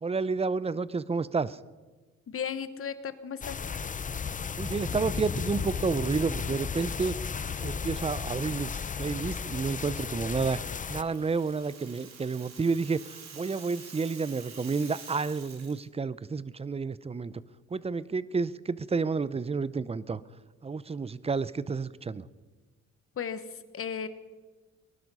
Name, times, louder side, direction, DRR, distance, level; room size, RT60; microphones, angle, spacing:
voice 1, 0.0-1.6 4.6-7.2 7.6-10.6 10.9-17.4 17.7-20.2 20.6-22.3, right 4 dB, 20° right, 19 dB, 0.6 m, -30 dB
voice 2, 2.3-3.6 23.2-24.1, left 7 dB, 45° left, 12 dB, 1.2 m, -35 dB
sound 1, 3.4-11.0, left 6 dB, 25° left, 0.6 m, -34 dB
Rattle (instrument), 10.6-15.8, right 6 dB, 65° right, 3.0 m, -48 dB
19.5 x 12.0 x 5.4 m, 1.3 s
cardioid pair, 90°, 30 cm